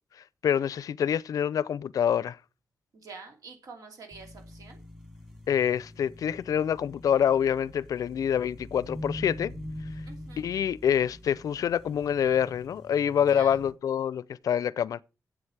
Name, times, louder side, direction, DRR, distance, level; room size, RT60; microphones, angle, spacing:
voice 1, 0.4-2.4 5.5-9.5 10.4-15.0, left 8 dB, 70° left, 0.4 m, -26 dB
voice 2, 2.9-4.8 10.1-10.5 13.3-13.6, right 4 dB, 75° right, 2.8 m, -46 dB
sound 1, 4.1-13.7, left 1 dB, 10° right, 2.5 m, -44 dB
7.9 x 7.9 x 7.1 m
wide cardioid pair, 160°, 6 cm